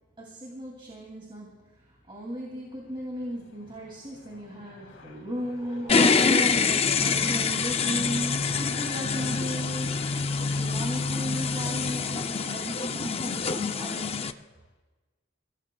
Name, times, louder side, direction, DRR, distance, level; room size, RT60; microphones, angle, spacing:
voice 1, 0.2-10.0 10.4-14.2, equal, 25° right, -1 dB, 2.6 m, -36 dB
sound 1, 2.3-14.6, left 3 dB, 70° left, 3.8 m, -46 dB
sound 2, 5.9-14.3, left 5 dB, 30° left, 0.5 m, -26 dB
29.0 x 17.0 x 2.3 m, 1.2 s
head